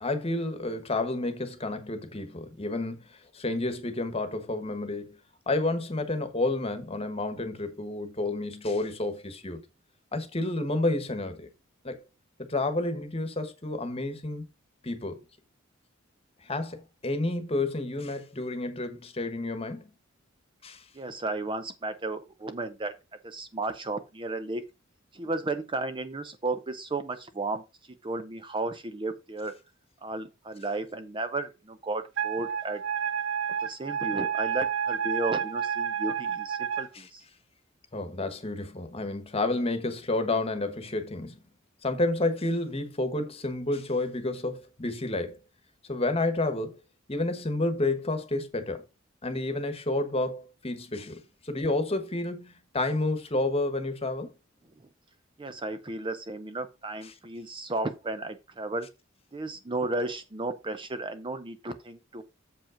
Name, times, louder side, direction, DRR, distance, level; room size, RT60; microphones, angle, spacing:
voice 1, 0.0-5.2 5.5-9.6 10.1-11.5 11.8-12.0 12.5-14.4 14.8-15.2 16.4-19.9 20.6-20.8 36.9-37.1 37.9-41.4 41.8-45.4 45.9-46.8 47.1-48.8 49.2-54.3, left 2 dB, 30° left, 1.3 m, -30 dB
voice 2, 20.9-22.9 23.2-24.6 25.1-27.6 28.0-29.5 30.0-32.8 33.6-37.2 55.4-58.9 59.3-62.2, right 2 dB, 25° right, 0.6 m, -34 dB
Wind instrument woodwind instrument, 32.2-36.9, right 8 dB, 65° right, 0.7 m, -30 dB
7.2 x 5.3 x 5.0 m
head